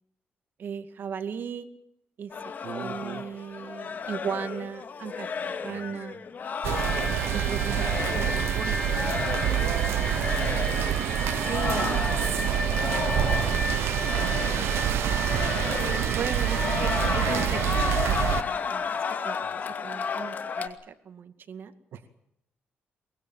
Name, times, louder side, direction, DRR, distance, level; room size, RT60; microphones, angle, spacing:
voice 1, 0.6-1.7 2.2-2.3 2.7-6.2 7.3-7.9 8.1-9.1 9.6-9.9 11.5-12.0 16.1-19.0 19.2-19.4 19.8-21.7, right 7 dB, 55° right, 9 dB, 2.2 m, -37 dB
sound 1, 2.3-8.5 8.8-9.8 10.1-10.9 11.3-13.7 13.9-14.9 15.2-16.2 16.4-20.7, left 6 dB, 45° left, 2.4 m, -33 dB
voice 2, 2.6-3.3 5.7-6.2 7.2-8.2 10.7-11.1 11.7-13.2 16.7-16.9 19.4-19.9 21.9-22.1, right 9 dB, 75° right, 9 dB, 2.1 m, -44 dB
sound 2, 6.6-18.4, right 11 dB, 90° right, 1.0 m, -27 dB
sound 3, 6.7-19.1, left 3 dB, 15° left, 1.3 m, -34 dB
23.0 x 21.0 x 7.5 m, 0.79 s
cardioid pair, 120°, 4 cm